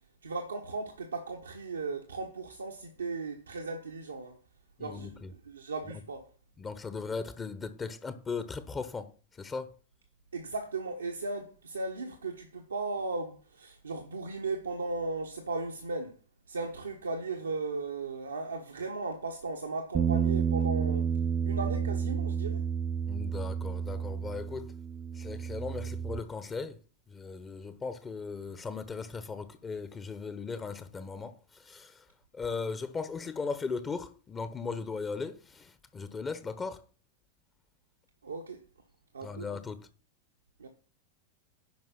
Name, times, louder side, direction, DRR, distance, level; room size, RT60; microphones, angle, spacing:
voice 1, 0.2-4.4 4.8-6.3 10.3-16.2 16.5-21.1 21.4-22.6 38.2-38.6 39.1-39.5 40.6-40.7, right 3 dB, 75° right, 1.2 m, -36 dB
voice 2, 4.8-5.3 6.6-9.1 9.4-9.7 23.1-24.7 25.1-26.8 27.1-32.0 32.3-36.8 39.2-39.9, left 4 dB, 20° left, 1.0 m, -38 dB
Bass guitar, 19.9-26.2, right 7 dB, 25° right, 0.5 m, -30 dB
10.5 x 5.5 x 5.6 m
figure-of-eight pair, 90°, 0 cm